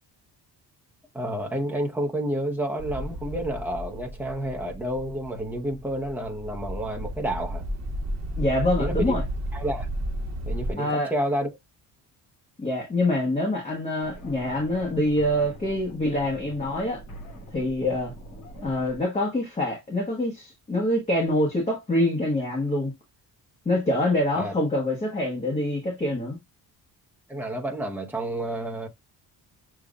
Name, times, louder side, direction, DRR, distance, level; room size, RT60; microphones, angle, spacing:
voice 1, 1.1-7.7 8.8-9.1 9.5-9.9 10.4-11.5 24.3-24.5 27.3-28.9, right 1 dB, 5° right, 0.8 m, -30 dB
sound 1, 2.8-10.7, right 1 dB, 40° right, 1.1 m, -33 dB
voice 2, 8.4-9.2 10.8-11.1 12.6-17.0 17.5-18.1 18.6-22.9 23.6-26.4, left 1 dB, 15° left, 1.1 m, -25 dB
sound 2, 14.0-19.0, right 1 dB, 50° left, 2.6 m, -43 dB
6.8 x 2.4 x 2.3 m
cardioid pair, 170°, 39 cm